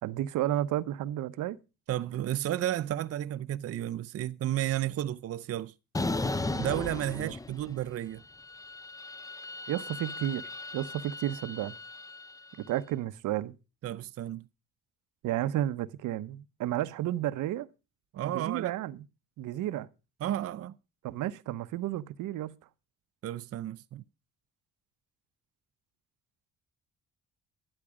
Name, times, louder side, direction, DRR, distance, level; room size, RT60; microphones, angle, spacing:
voice 1, 0.0-1.6 7.1-7.3 9.7-11.8 12.7-13.6 15.2-17.7 18.2-19.0 19.4-19.9 21.0-22.5, right 13 dB, 85° right, 0.8 m, -32 dB
voice 2, 1.9-5.7 6.5-8.2 13.8-14.5 18.1-18.7 20.2-20.8 23.2-24.0, right 12 dB, 55° right, 0.5 m, -32 dB
sound 1, 5.9-7.9 8.2-12.5, left 2 dB, 10° left, 0.6 m, -36 dB
12.5 x 10.0 x 4.9 m
cardioid pair, 90°, 30 cm